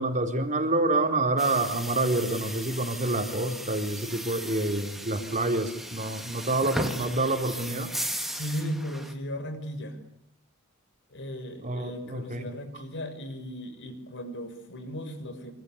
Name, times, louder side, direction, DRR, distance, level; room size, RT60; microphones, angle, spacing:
voice 1, 0.0-7.9 11.6-12.5, right 2 dB, 35° right, 5 dB, 4.3 m, -27 dB
sound 1, 1.4-9.1, right 1 dB, ahead, 3.2 m, -37 dB
voice 2, 8.3-10.0 11.1-15.5, equal, 55° left, 9 dB, 6.2 m, -36 dB
27.0 x 25.5 x 8.4 m, 0.75 s
head